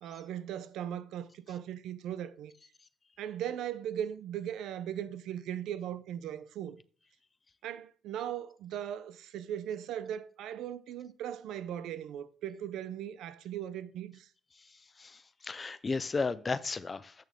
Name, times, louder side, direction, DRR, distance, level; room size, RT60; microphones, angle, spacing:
voice 1, 0.0-2.5 3.2-6.8 7.6-14.3, right 10 dB, 85° right, 0.5 m, -38 dB
voice 2, 14.6-17.2, left 4 dB, 30° left, 0.5 m, -35 dB
8.6 x 6.2 x 3.5 m
cardioid pair, 90°, 0 cm